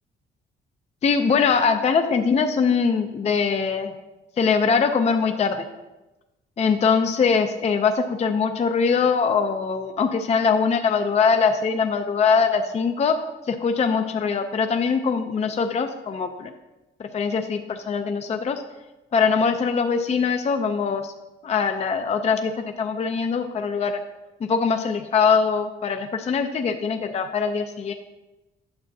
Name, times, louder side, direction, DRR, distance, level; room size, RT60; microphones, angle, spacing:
voice 1, 1.0-3.9 4.4-5.6 6.6-13.1 13.5-16.5 17.1-18.6 19.1-21.1 21.4-22.5 22.8-24.0 24.4-27.9, left 5 dB, 35° left, 6 dB, 0.5 m, -22 dB
8.9 x 6.6 x 2.7 m, 1.1 s
cardioid pair, 90°, 20 cm